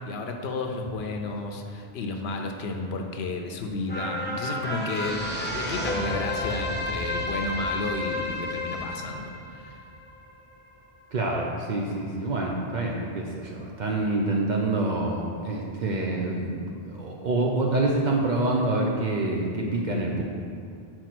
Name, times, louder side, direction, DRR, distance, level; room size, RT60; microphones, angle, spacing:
voice 1, 0.0-9.8, left 3 dB, 80° left, 3 dB, 0.8 m, -32 dB
sound 1, 3.9-10.5 11.0-11.1, left 1 dB, 10° left, 0.6 m, -31 dB
voice 2, 11.1-20.2, right 2 dB, 55° right, -1 dB, 0.6 m, -27 dB
4.5 x 4.5 x 5.9 m, 2.4 s
omnidirectional pair, 1.0 m